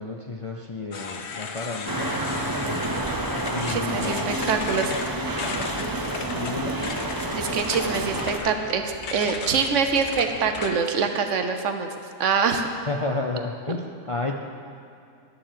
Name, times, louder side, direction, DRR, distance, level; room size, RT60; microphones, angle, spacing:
voice 1, 0.0-2.1 3.5-4.6 6.3-6.8 12.9-14.4, left 2 dB, 40° left, 1 dB, 0.5 m, -31 dB
sound 1, 0.9-11.0, left 5 dB, 65° left, 1.1 m, -36 dB
sound 2, 1.9-8.4, right 1 dB, 20° right, 0.7 m, -29 dB
voice 2, 3.7-4.9 7.3-11.9 12.2-12.7, right 5 dB, 75° right, 6 dB, 1.2 m, -25 dB
sound 3, 5.0-10.6, left 1 dB, 80° left, 2.5 m, -45 dB
11.0 x 7.2 x 7.5 m, 2.6 s
omnidirectional pair, 1.3 m